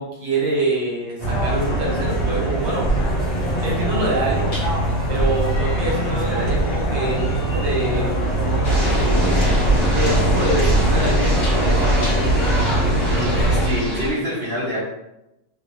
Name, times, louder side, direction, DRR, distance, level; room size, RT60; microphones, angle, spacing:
voice 1, 0.0-2.9 3.6-4.5 5.1-8.1 8.9-9.4 9.9-12.2, right 2 dB, 75° right, -3 dB, 1.7 m, -25 dB
sound 1, 1.2-13.6, right 1 dB, 70° left, 0.5 m, -22 dB
sound 2, 4.5-12.5, left 1 dB, 45° left, 1.2 m, -41 dB
sound 3, 8.6-14.1, equal, 30° left, 0.8 m, -21 dB
voice 2, 12.7-14.8, left 1 dB, 45° right, -10 dB, 0.8 m, -27 dB
3.0 x 2.7 x 2.5 m, 0.90 s
omnidirectional pair, 2.2 m